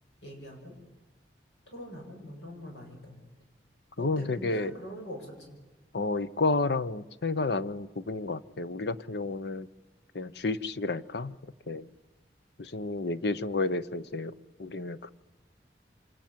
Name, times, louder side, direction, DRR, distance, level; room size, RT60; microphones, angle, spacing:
voice 1, 0.2-0.8 1.7-3.3 4.0-5.6, equal, 85° left, 2 dB, 7.9 m, -43 dB
voice 2, 4.0-4.7 5.9-9.7 10.1-11.4 11.7-11.9 12.6-14.3 14.6-15.1, left 3 dB, 65° left, 14 dB, 0.8 m, -31 dB
28.5 x 26.0 x 7.5 m, 1.2 s
head